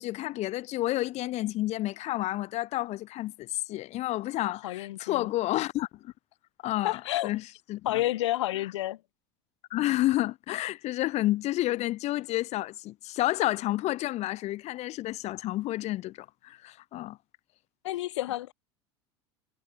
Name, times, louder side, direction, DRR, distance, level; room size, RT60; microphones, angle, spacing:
voice 1, 0.0-6.1 6.6-7.4 7.7-8.0 9.7-17.2, left 16 dB, 50° left, 0.7 m, -30 dB
voice 2, 4.6-5.3 6.8-7.3 7.8-9.0 17.8-18.5, left 15 dB, 85° left, 1.1 m, -30 dB
hypercardioid pair, 90°, 15 cm